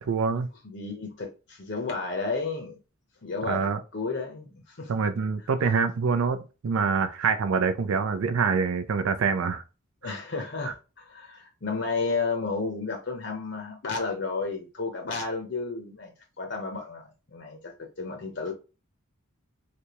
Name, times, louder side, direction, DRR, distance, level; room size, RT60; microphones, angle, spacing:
voice 1, 0.0-0.5 3.5-3.8 4.9-9.6 10.0-10.1 10.7-10.8, right 5 dB, 80° right, 0.4 m, -25 dB
voice 2, 0.6-2.8 3.2-4.9 10.0-16.1 16.4-18.5, left 4 dB, 55° left, 0.7 m, -32 dB
3.3 x 2.8 x 2.8 m
head